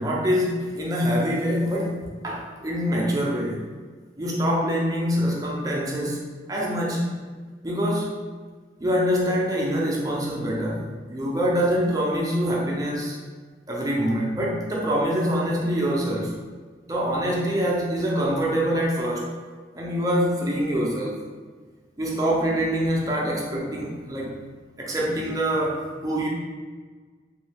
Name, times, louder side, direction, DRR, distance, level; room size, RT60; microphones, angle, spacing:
voice 1, 0.0-3.6 4.2-7.0 7.6-8.2 8.8-13.2 13.7-16.3 16.8-19.3 19.7-21.2 22.0-24.4 24.8-26.3, equal, 20° right, -3 dB, 0.4 m, -25 dB
3.1 x 2.2 x 3.2 m, 1.5 s
head